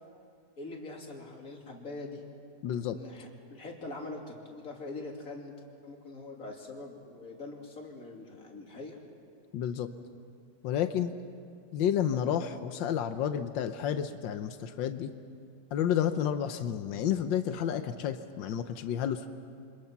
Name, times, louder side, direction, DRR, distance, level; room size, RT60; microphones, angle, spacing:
voice 1, 0.6-2.2 2.8-5.5 5.8-9.0, left 2 dB, 45° left, 0 dB, 3.2 m, -43 dB
voice 2, 2.6-3.0 9.5-9.9 10.6-11.1 11.7-15.1 15.7-19.3, left 9 dB, 90° left, 9 dB, 1.6 m, -30 dB
28.0 x 25.0 x 5.9 m, 2.4 s
omnidirectional pair, 2.0 m